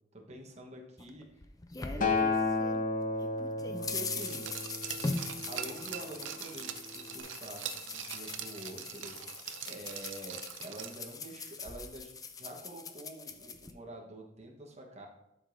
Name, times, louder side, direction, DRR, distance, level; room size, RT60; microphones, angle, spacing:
voice 1, 0.3-1.3 1.9-2.4 3.7-4.5 5.5-9.2 9.6-15.1, equal, 35° right, 1 dB, 1.2 m, -46 dB
sound 1, 1.0-2.8 3.2-13.7, left 3 dB, 20° left, 0.5 m, -41 dB
Acoustic guitar, 2.0-6.3 7.1-7.2, left 3 dB, 45° left, 0.8 m, -33 dB
Glass, 4.2-11.2 11.5-11.6, right 9 dB, 75° right, 0.5 m, -43 dB
11.0 x 5.0 x 2.7 m, 0.83 s
head